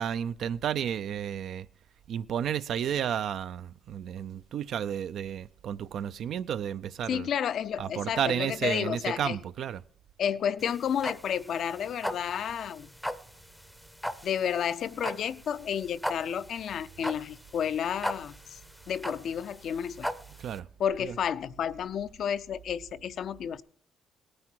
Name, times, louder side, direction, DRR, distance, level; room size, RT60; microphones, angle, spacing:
voice 1, 0.0-1.7 2.1-7.3 7.8-9.8 20.4-20.7 21.0-21.2, right 9 dB, 70° right, 0.4 m, -32 dB
voice 2, 7.1-9.4 10.2-12.9 14.2-18.6 18.9-20.1 20.8-23.6, left 8 dB, 65° left, 0.5 m, -31 dB
sound 1, 10.6-20.6, equal, 5° left, 0.6 m, -37 dB
18.0 x 9.6 x 4.5 m
cardioid pair, 90°, 0 cm